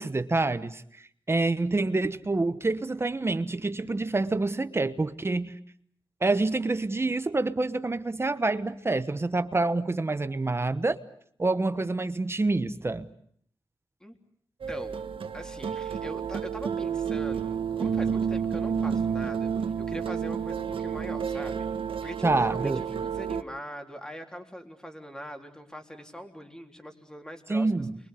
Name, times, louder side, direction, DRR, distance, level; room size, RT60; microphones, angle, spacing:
voice 1, 0.0-5.5 6.2-11.0 11.4-13.1 22.2-22.8 27.5-28.0, right 2 dB, 30° right, 1.1 m, -27 dB
sound 1, 14.6-23.4, right 7 dB, 85° right, 1.4 m, -30 dB
voice 2, 14.7-15.0 15.3-21.7 22.0-27.9, equal, 10° left, 3.7 m, -42 dB
29.5 x 23.0 x 8.4 m
wide cardioid pair, 95°, 9 cm